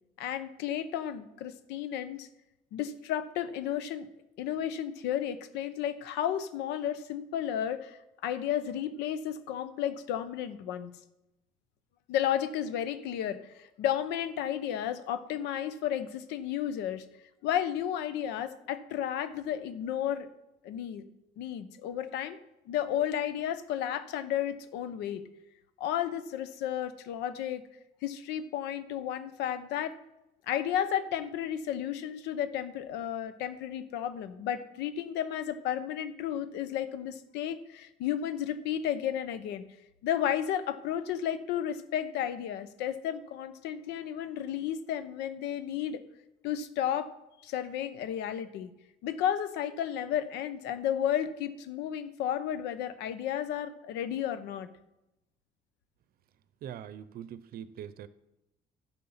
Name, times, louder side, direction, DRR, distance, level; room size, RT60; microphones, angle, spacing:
voice 1, 0.2-2.3 2.7-4.1 4.4-10.9 12.1-17.0 17.4-20.3 20.6-21.0 21.4-22.4 22.7-25.2 25.8-27.6 28.0-29.9 30.5-39.6 40.0-46.0 46.4-47.1 47.4-48.7 49.0-54.7, left 10 dB, 90° left, 0.9 m, -33 dB
voice 2, 56.6-58.1, right 9 dB, 65° right, 0.7 m, -42 dB
11.5 x 7.3 x 5.7 m
cardioid pair, 110°, 17 cm